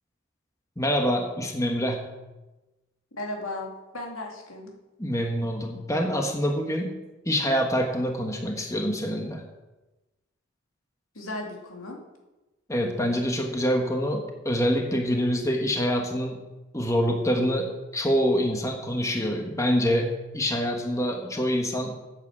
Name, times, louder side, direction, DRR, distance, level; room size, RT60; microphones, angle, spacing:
voice 1, 0.8-2.0 5.0-7.0 7.2-9.4 12.7-16.4 16.7-22.0, equal, 15° left, 2 dB, 1.2 m, -26 dB
voice 2, 3.1-4.7 11.1-12.0, left 2 dB, 85° left, 0 dB, 2.6 m, -35 dB
9.6 x 8.7 x 7.3 m, 1.1 s
head